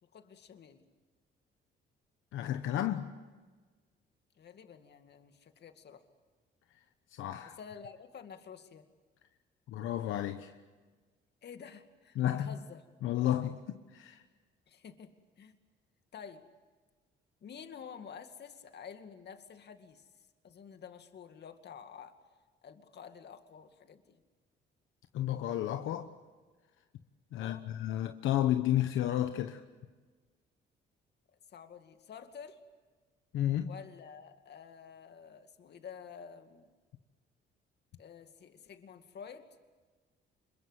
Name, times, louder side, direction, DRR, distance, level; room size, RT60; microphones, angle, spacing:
voice 1, 0.0-0.8 4.4-6.0 7.5-8.9 11.4-12.8 14.7-15.1 15.4-15.6 16.1-16.5 17.4-22.2 22.6-24.2 27.4-27.7 31.5-32.6 33.6-36.7 38.0-39.5, left 7 dB, 60° left, 2.3 m, -50 dB
voice 2, 2.3-3.1 7.1-7.6 9.7-10.5 12.2-12.5 13.0-14.2 25.1-26.1 27.3-29.6 33.3-33.7, left 12 dB, 85° left, 1.1 m, -32 dB
26.5 x 23.0 x 8.2 m
cardioid pair, 90°, 20 cm